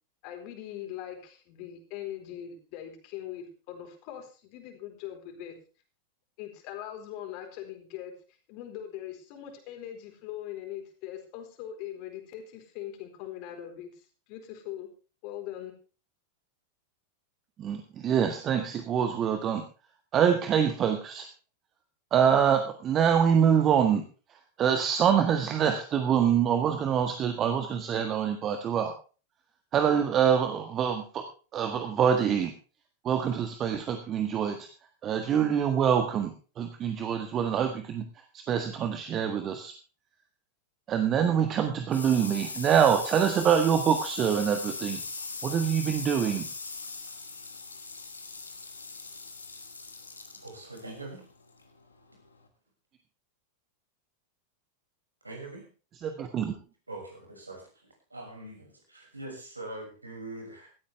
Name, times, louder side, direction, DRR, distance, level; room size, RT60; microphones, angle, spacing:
voice 1, 0.2-5.6 6.4-8.1 8.5-14.9 15.2-15.7, left 11 dB, 45° left, 4 dB, 4.1 m, -41 dB
voice 2, 17.6-19.6 20.1-21.3 22.1-24.0 24.3-28.9 29.7-31.2 31.5-32.5 33.0-34.7 35.0-38.0 38.3-39.7 40.9-45.0 45.4-46.5 55.9-56.5, right 8 dB, 30° right, 6 dB, 1.6 m, -25 dB
sound 1, 41.2-52.5, left 4 dB, 80° left, 2.5 m, -40 dB
voice 3, 50.4-51.2 55.2-55.7 56.9-57.6 58.1-60.7, right 2 dB, 80° right, 1 dB, 6.2 m, -42 dB
17.0 x 13.5 x 3.4 m, 0.36 s
figure-of-eight pair, 90°, 0 cm